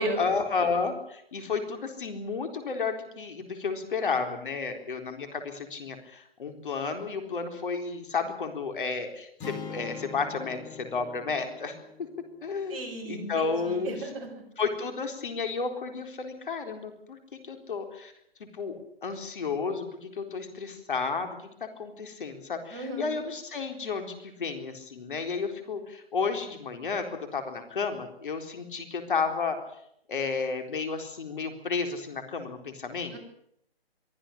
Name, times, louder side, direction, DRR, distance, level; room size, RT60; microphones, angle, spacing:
voice 1, 0.2-11.7 12.4-12.8 13.1-14.0 14.6-17.2 17.5-18.1 18.4-29.6 30.1-33.1, left 4 dB, 55° left, 6 dB, 4.1 m, -32 dB
sound 1, 9.4-13.6, left 6 dB, 10° left, 1.9 m, -44 dB
voice 2, 12.7-14.4 22.7-23.2 33.1-33.2, right 1 dB, 20° right, -3 dB, 5.7 m, -34 dB
24.0 x 14.0 x 10.0 m, 0.73 s
hypercardioid pair, 165°, 31 cm